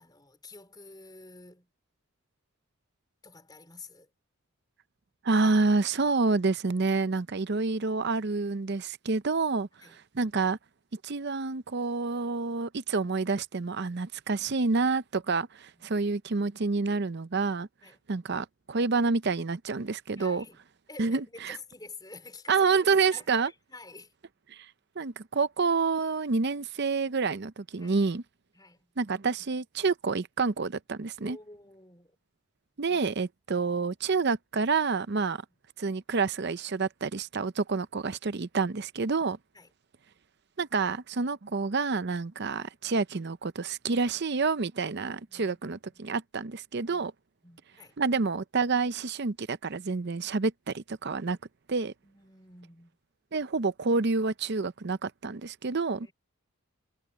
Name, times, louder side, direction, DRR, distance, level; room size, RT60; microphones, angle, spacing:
voice 1, 0.0-1.7 3.2-4.1 7.4-7.7 9.8-10.0 15.2-15.3 15.7-15.9 17.8-18.0 20.1-20.6 20.9-24.1 27.8-28.0 28.5-28.9 31.2-32.2 32.9-33.1 39.5-39.7 45.3-45.6 45.9-46.0 46.7-47.1 47.4-48.0 52.0-52.9 56.0-56.1, left 3 dB, 20° left, 4.2 m, -49 dB
voice 2, 5.2-10.6 11.0-15.5 15.8-17.7 18.1-20.4 21.0-21.6 22.5-23.5 24.5-24.7 25.0-28.2 29.0-31.4 32.8-35.4 35.8-39.4 40.6-47.1 48.0-51.4 51.7-51.9 53.3-56.1, right 4 dB, 50° right, 0.6 m, -28 dB
head